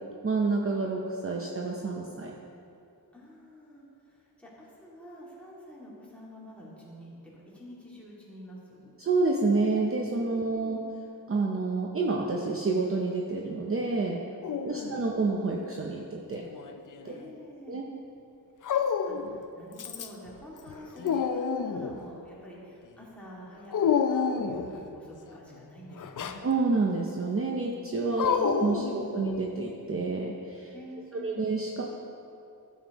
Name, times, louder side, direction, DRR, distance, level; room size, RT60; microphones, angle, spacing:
voice 1, 0.2-2.3 9.0-10.8 11.3-14.2 14.6-16.4 17.0-17.1 17.7-17.9 26.4-30.7 31.2-31.8, right 3 dB, 35° right, -1 dB, 0.7 m, -28 dB
voice 2, 3.1-7.1 7.5-8.9 10.4-10.8 14.7-15.1 17.1-17.7 19.0-23.8 24.0-26.4 28.2-28.5 28.8-29.1 30.7-31.6, equal, 5° left, -7 dB, 2.4 m, -47 dB
Dog, 14.4-15.3 16.4-17.2 18.6-19.4 19.8-20.3 20.7-22.0 23.7-24.8 26.0-26.4 28.2-29.5, left 6 dB, 55° left, 0.5 m, -29 dB
13.0 x 7.4 x 3.0 m, 2.6 s
wide cardioid pair, 125°, 37 cm